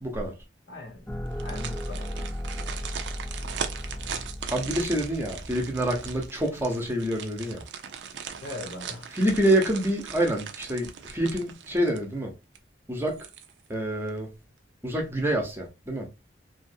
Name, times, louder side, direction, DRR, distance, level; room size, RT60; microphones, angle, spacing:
voice 1, 0.0-0.3 4.5-7.6 9.1-12.3 12.9-13.2 13.7-14.3 14.8-16.1, right 1 dB, 15° right, 0.7 m, -27 dB
voice 2, 0.7-2.1 8.4-9.1, left 2 dB, 75° left, 1.0 m, -40 dB
sound 1, 1.1-6.3, equal, 5° left, 0.3 m, -36 dB
sound 2, 1.2-12.2 12.5-12.6 13.1-13.7 14.1-14.2, right 7 dB, 75° right, 0.4 m, -39 dB
2.7 x 2.5 x 2.6 m
head